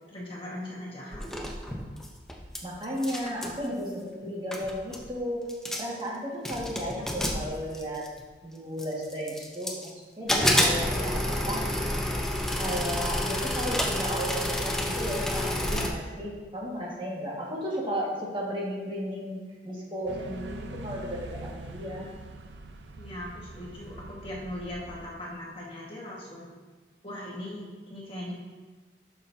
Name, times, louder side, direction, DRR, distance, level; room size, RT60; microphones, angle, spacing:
voice 1, 0.1-1.2 23.0-26.5 27.0-28.3, left 1 dB, 30° left, -5 dB, 1.5 m, -39 dB
sound 1, 1.1-2.6 2.8-3.6 4.2-4.3 4.5-5.1 5.5-6.0 6.4-8.2 8.8-9.9 10.3-15.9, left 1 dB, 5° left, 0.7 m, -29 dB
voice 2, 2.6-5.5 5.8-8.1 8.4-11.7 12.6-22.1, equal, 30° right, -5 dB, 1.7 m, -34 dB
sound 2, 20.1-25.1, right 2 dB, 80° right, 0.6 m, -43 dB
12.0 x 6.0 x 2.7 m, 1.4 s
head